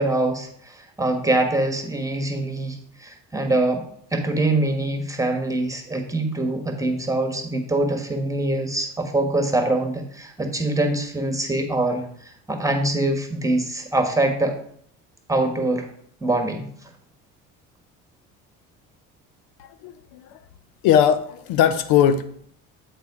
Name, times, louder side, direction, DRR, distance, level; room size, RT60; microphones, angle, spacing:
voice 1, 0.0-3.8 4.1-14.6 15.3-15.9 16.2-16.7, right 2 dB, 10° right, 5 dB, 1.4 m, -24 dB
voice 2, 19.6-20.4 20.8-22.3, left 9 dB, 80° left, 12 dB, 0.6 m, -20 dB
7.9 x 4.1 x 4.8 m, 0.63 s
supercardioid pair, 75°, 35 cm